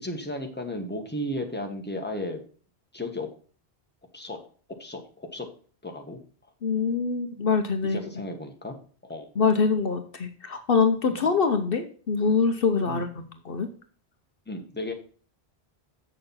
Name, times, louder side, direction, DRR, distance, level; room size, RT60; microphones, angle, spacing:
voice 1, 0.0-2.4 2.9-3.3 4.1-4.4 4.8-5.5 5.8-6.2 7.8-8.7 9.0-9.3 11.1-11.2 12.8-13.0 14.5-14.9, left 1 dB, 10° left, 3 dB, 1.4 m, -34 dB
voice 2, 6.6-8.0 9.4-13.7, left 5 dB, 60° left, 7 dB, 1.0 m, -24 dB
7.9 x 6.7 x 5.6 m, 0.42 s
omnidirectional pair, 1.1 m